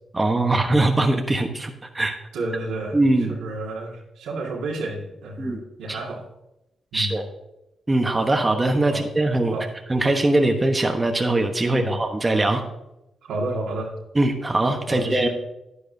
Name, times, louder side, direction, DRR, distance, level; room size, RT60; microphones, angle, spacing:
voice 1, 0.1-2.2 2.9-3.3 5.4-5.6 5.9-6.0 6.9-7.2 7.9-9.6 9.9-12.6 14.1-15.3, right 2 dB, 25° right, 4 dB, 1.1 m, -21 dB
voice 2, 2.3-3.0 3.3-6.2 6.9-7.2 8.9-9.1 9.5-9.7 11.7-11.9 13.3-13.9 14.9-15.3, right 2 dB, 90° right, -2 dB, 2.0 m, -30 dB
10.0 x 9.9 x 2.8 m, 0.91 s
cardioid pair, 60°, 0 cm